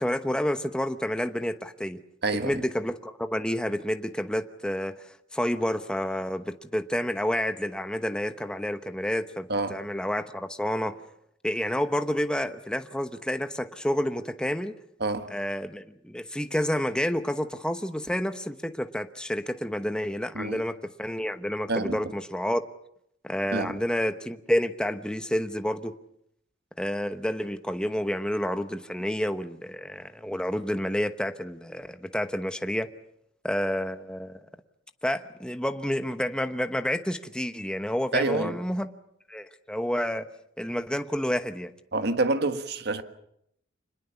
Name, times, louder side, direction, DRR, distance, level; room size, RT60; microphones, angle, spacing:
voice 1, 0.0-2.0 2.4-11.0 11.4-14.7 15.3-22.6 23.2-25.9 26.8-32.9 33.4-34.4 35.0-38.9 39.3-40.3 40.6-41.7, equal, 5° left, 1.0 m, -29 dB
voice 2, 2.2-2.6 9.5-9.8 15.0-15.3 20.3-20.6 21.7-22.0 23.5-23.7 38.1-38.5 41.9-43.0, right 2 dB, 60° right, 1.6 m, -27 dB
26.5 x 20.5 x 7.1 m
head